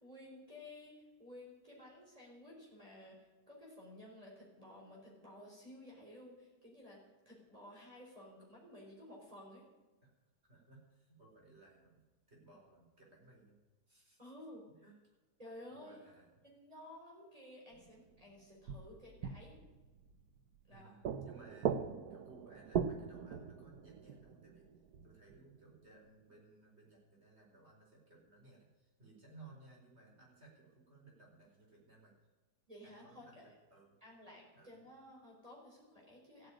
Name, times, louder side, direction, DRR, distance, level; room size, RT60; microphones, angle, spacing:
voice 1, 0.0-7.0 7.2-9.7 14.2-14.6 15.4-16.0 16.4-19.6 20.7-20.9 32.7-33.5 34.0-36.5, left 1 dB, 20° right, -4 dB, 4.6 m, -54 dB
voice 2, 10.4-13.6 13.9-14.3 14.7-15.2 15.7-16.3 20.7-24.7 25.0-32.1 32.8-33.4 33.7-34.0 34.5-34.8, right 3 dB, 40° right, -2 dB, 5.1 m, -61 dB
sound 1, 17.7-18.2 18.7-20.8 21.0-25.4 25.7-25.8, right 7 dB, 80° right, 1.4 m, -41 dB
15.0 x 9.8 x 9.0 m, 1.2 s
omnidirectional pair, 1.6 m